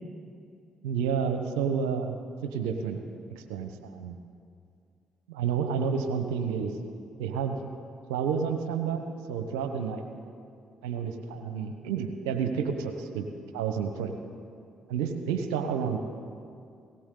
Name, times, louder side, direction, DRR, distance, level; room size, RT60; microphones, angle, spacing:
voice 1, 0.8-2.2 2.4-3.0 3.3-4.2 5.3-6.8 7.2-7.6 8.1-10.0 10.8-13.3 13.5-14.1 14.9-16.0, right 6 dB, 90° right, 7 dB, 1.0 m, -30 dB
18.0 x 17.5 x 3.9 m, 2.5 s
hypercardioid pair, 50°, 2 cm